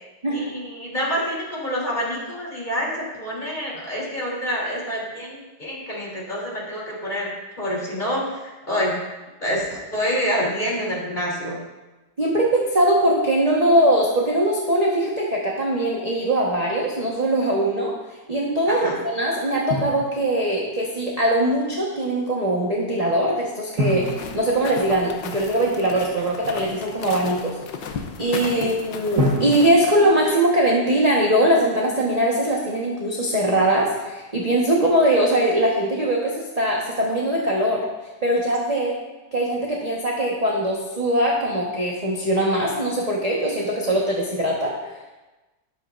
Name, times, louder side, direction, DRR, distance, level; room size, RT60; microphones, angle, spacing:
voice 1, 0.3-7.3 7.6-8.2 8.7-9.0 9.4-11.6 18.7-19.0 28.5-28.7 38.7-38.8, equal, 25° left, -5 dB, 3.3 m, -27 dB
voice 2, 12.2-17.9 18.3-24.0 24.3-27.6 28.2-37.8 38.2-38.9 39.3-44.7, right 1 dB, 25° right, -4 dB, 1.2 m, -21 dB
Drum, 19.7-20.8 23.8-25.6 29.2-31.2, equal, 45° right, 1.7 m, -29 dB
sound 1, 23.9-29.8, left 6 dB, 80° left, 1.5 m, -36 dB
12.5 x 11.0 x 2.6 m, 1.1 s
omnidirectional pair, 2.0 m